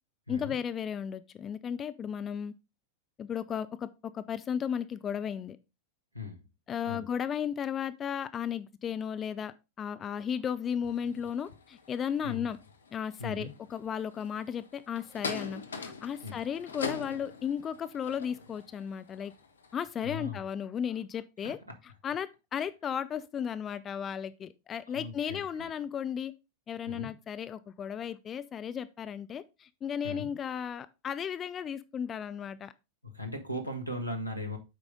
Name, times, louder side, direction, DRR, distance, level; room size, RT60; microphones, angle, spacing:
voice 1, 0.3-2.5 3.2-3.9 4.1-5.6 6.7-12.6 12.9-19.3 19.7-21.6 22.0-26.3 26.7-32.7, left 8 dB, 25° left, 0.4 m, -35 dB
sound 1, 10.8-19.9, left 5 dB, 70° left, 0.8 m, -43 dB
voice 2, 13.2-13.5 16.2-16.4 20.0-20.4 21.4-21.6 24.9-25.6 26.9-27.1 30.0-30.3 33.0-34.6, left 2 dB, 90° left, 1.3 m, -38 dB
8.2 x 4.8 x 3.6 m
figure-of-eight pair, 90°, 0 cm